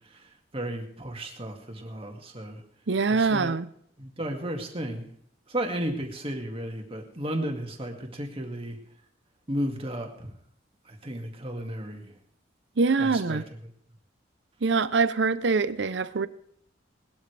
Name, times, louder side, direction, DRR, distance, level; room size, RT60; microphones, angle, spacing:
voice 1, 0.1-2.6 3.2-3.5 4.0-5.1 5.5-8.8 9.5-10.3 10.9-12.1 13.0-13.4, right 1 dB, 30° right, 2.1 m, -34 dB
voice 2, 2.9-3.7 12.8-13.4 14.6-16.3, right 4 dB, 65° right, 0.7 m, -24 dB
19.5 x 13.0 x 3.4 m
head